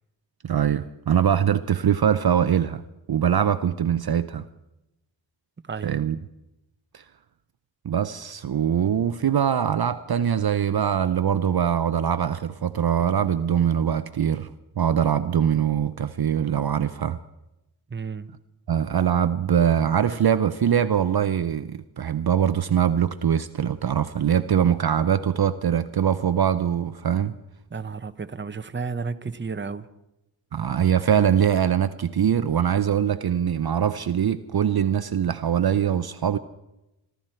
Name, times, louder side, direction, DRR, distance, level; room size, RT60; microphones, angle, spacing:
voice 1, 0.4-2.8 3.1-4.5 5.8-6.2 6.9-7.0 7.8-17.2 18.7-27.3 30.5-36.4, right 8 dB, 55° right, 0.6 m, -22 dB
voice 2, 5.7-6.0 17.9-18.3 27.7-29.9, right 5 dB, 25° right, 0.8 m, -32 dB
25.5 x 12.5 x 4.4 m
wide cardioid pair, 80°, 46 cm